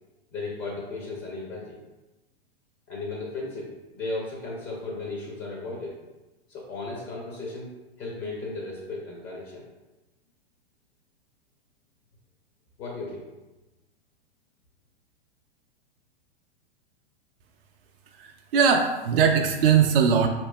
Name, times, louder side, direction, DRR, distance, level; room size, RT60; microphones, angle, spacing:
voice 1, 0.3-1.8 2.9-5.9 6.5-7.7 8.0-9.6 12.8-13.2, left 3 dB, 30° left, -4 dB, 0.8 m, -35 dB
voice 2, 18.2-20.3, right 6 dB, 60° right, 4 dB, 0.5 m, -20 dB
4.5 x 2.9 x 2.2 m, 1.1 s
figure-of-eight pair, 105°, 32 cm